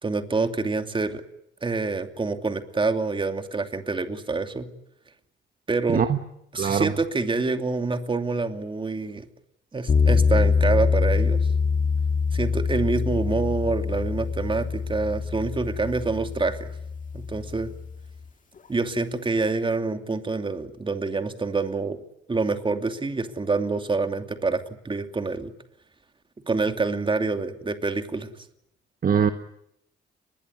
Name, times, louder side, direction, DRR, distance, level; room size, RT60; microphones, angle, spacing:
voice 1, 0.0-1.2 1.6-4.7 5.7-6.0 6.5-9.2 9.7-11.4 12.3-16.7 17.1-17.7 18.7-22.0 22.3-25.5 26.5-28.3, right 3 dB, 25° right, 7 dB, 2.7 m, -26 dB
voice 2, 6.5-6.9 29.0-29.3, right 7 dB, 45° right, 8 dB, 1.3 m, -21 dB
sound 1, 9.9-18.0, left 5 dB, 40° left, 2.1 m, -24 dB
23.5 x 21.5 x 9.9 m, 0.79 s
cardioid pair, 90°, 20 cm